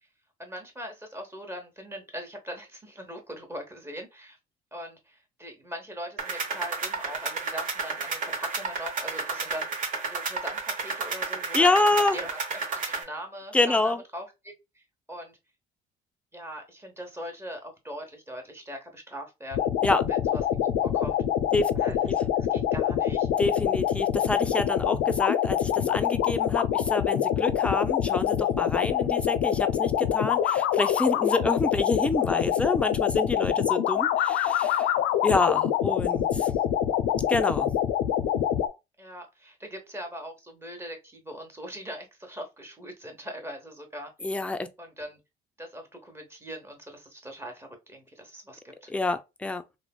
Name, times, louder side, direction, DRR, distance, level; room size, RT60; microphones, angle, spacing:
voice 1, 0.4-4.4 4.7-12.4 12.9-15.4 16.3-19.7 20.1-21.2 21.7-23.3 39.0-44.1 44.8-45.2 45.6-48.9, equal, 15° right, 0.8 m, -41 dB
sound 1, 6.2-13.0, right 4 dB, 50° right, 0.8 m, -32 dB
voice 2, 11.5-12.2 13.5-14.0 19.8-20.0 21.5-21.7 22.1-22.2 23.4-34.9 35.2-36.5 37.3-37.7 44.2-44.7 48.9-49.6, left 2 dB, 5° left, 0.3 m, -27 dB
sound 2, 19.5-38.7, left 10 dB, 85° left, 0.4 m, -25 dB
3.2 x 2.1 x 2.2 m
cardioid pair, 110°, 17 cm